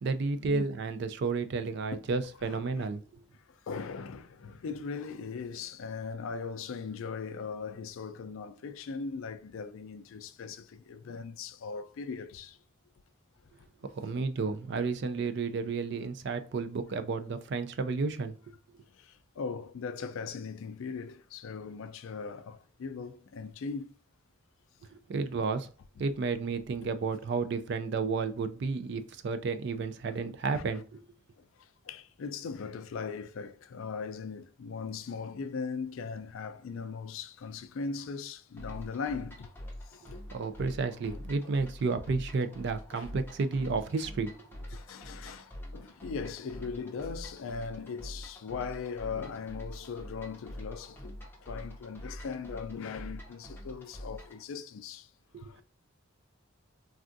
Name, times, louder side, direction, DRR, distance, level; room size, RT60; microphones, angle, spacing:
voice 1, 0.0-3.2 13.8-18.5 24.9-25.7 26.0-31.0 40.3-44.3 55.3-55.5, right 4 dB, 55° right, 0.3 m, -32 dB
voice 2, 2.4-2.9 3.3-12.6 14.0-14.1 18.9-23.9 30.5-30.7 31.6-39.5 39.9-40.2 42.9-43.1 44.0-44.1 44.7-55.1 55.4-55.6, left 5 dB, 75° left, 0.4 m, -39 dB
sound 1, 38.6-54.4, equal, 10° left, 0.6 m, -45 dB
3.5 x 2.3 x 2.5 m
head